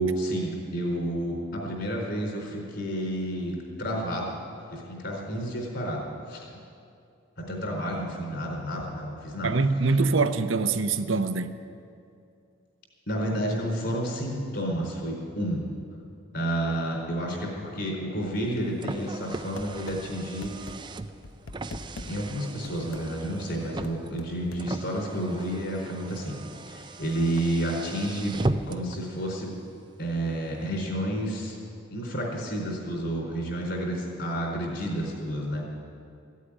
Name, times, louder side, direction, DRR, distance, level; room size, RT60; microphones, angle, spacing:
voice 1, 0.0-4.4 4.7-6.5 7.4-9.5 13.1-15.6 16.3-20.5 22.1-26.4 26.6-28.4 28.7-29.5 30.0-31.6 31.9-35.7, right 1 dB, 55° left, -1 dB, 4.2 m, -30 dB
voice 2, 9.4-11.5, right 4 dB, 75° right, 9 dB, 0.7 m, -24 dB
Car, 18.4-29.0, right 2 dB, 25° right, 0.4 m, -37 dB
sound 1, 19.6-20.0 20.4-20.8 21.2-22.1 22.6-23.1 23.8-24.7, left 2 dB, 80° left, 0.9 m, -40 dB
15.5 x 8.4 x 9.9 m, 2.4 s
head